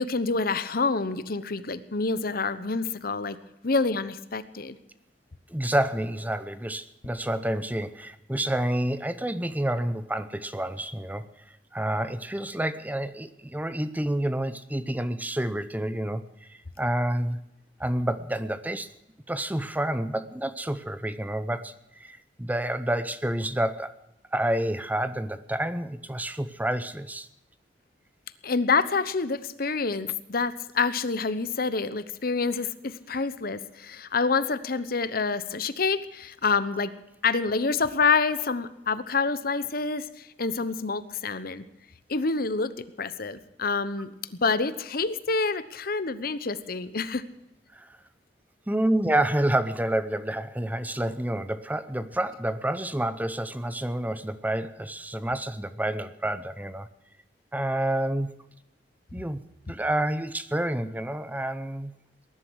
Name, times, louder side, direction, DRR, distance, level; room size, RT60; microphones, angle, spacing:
voice 1, 0.0-3.4 3.6-4.8 28.4-36.9 37.2-41.6 42.1-42.7 43.0-47.2, left 4 dB, 55° left, 14 dB, 1.0 m, -27 dB
voice 2, 5.5-11.2 11.7-17.4 17.8-18.9 19.3-24.0 24.3-27.3 47.7-48.0 48.7-56.9 57.5-58.3 59.1-59.4 59.7-61.9, right 1 dB, 10° right, 13 dB, 0.7 m, -29 dB
20.0 x 11.5 x 6.3 m, 0.88 s
head